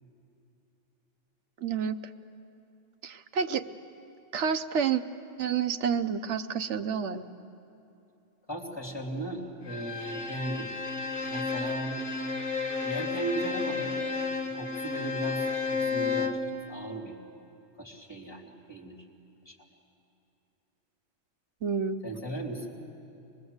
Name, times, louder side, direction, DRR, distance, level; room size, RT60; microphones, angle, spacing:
voice 1, 1.6-1.9 3.0-3.7 4.3-5.0 5.4-7.3 21.6-22.0, right 7 dB, 75° right, 9 dB, 1.1 m, -29 dB
voice 2, 8.5-10.7 11.3-12.1 12.8-14.1 14.5-16.3 16.7-17.2 17.8-19.0 19.4-19.5 22.0-22.7, right 1 dB, 20° left, -1 dB, 2.9 m, -36 dB
Bowed string instrument, 9.7-16.5, left 4 dB, 45° left, 1.6 m, -32 dB
24.0 x 20.5 x 8.0 m, 2.8 s
omnidirectional pair, 1.3 m